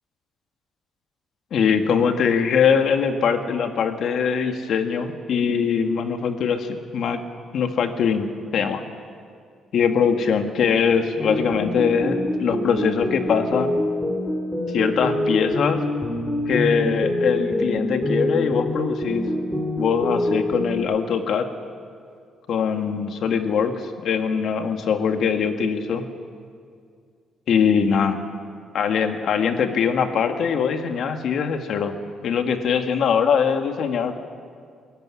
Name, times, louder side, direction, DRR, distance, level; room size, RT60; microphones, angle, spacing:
voice 1, 1.5-7.2 7.5-8.3 8.5-8.8 9.7-13.8 14.7-15.8 16.5-19.3 19.8-21.5 22.5-23.7 24.0-26.0 27.5-28.2 28.7-31.9 32.2-34.2, left 6 dB, 70° left, 6 dB, 1.8 m, -22 dB
sound 1, 11.2-20.8, left 1 dB, 5° left, 3.3 m, -25 dB
22.5 x 13.5 x 9.8 m, 2.2 s
cardioid pair, 90°, 0 cm